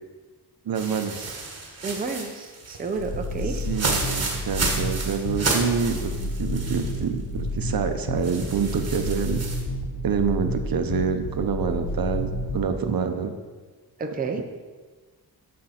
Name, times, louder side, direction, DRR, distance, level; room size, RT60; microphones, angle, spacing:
sound 1, 0.7-7.0 7.4-7.5 8.2-9.6, right 3 dB, 40° right, 1.4 m, -31 dB
voice 1, 0.7-1.4 3.5-9.4 10.0-13.3, right 6 dB, 60° right, 7 dB, 0.7 m, -27 dB
voice 2, 1.8-3.6 14.0-14.4, right 4 dB, 20° right, 4 dB, 0.6 m, -30 dB
sound 2, 3.0-12.6, left 1 dB, 70° left, 1.1 m, -30 dB
7.4 x 6.5 x 5.7 m, 1.4 s
wide cardioid pair, 165°, 40 cm